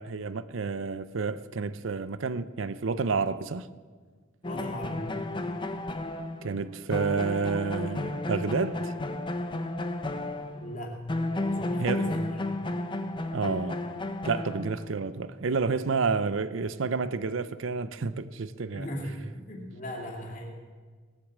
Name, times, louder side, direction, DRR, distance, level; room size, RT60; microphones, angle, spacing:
voice 1, 0.0-3.7 6.4-8.9 11.8-12.1 13.3-13.8 14.2-18.9, right 4 dB, 70° right, 0.6 m, -30 dB
voice 2, 4.4-5.1 10.5-11.0 11.4-12.2 18.7-20.5, equal, 40° left, 2.6 m, -38 dB
sound 1, 4.4-10.8 11.1-15.0, left 2 dB, 25° left, 0.7 m, -33 dB
18.5 x 8.3 x 7.4 m
head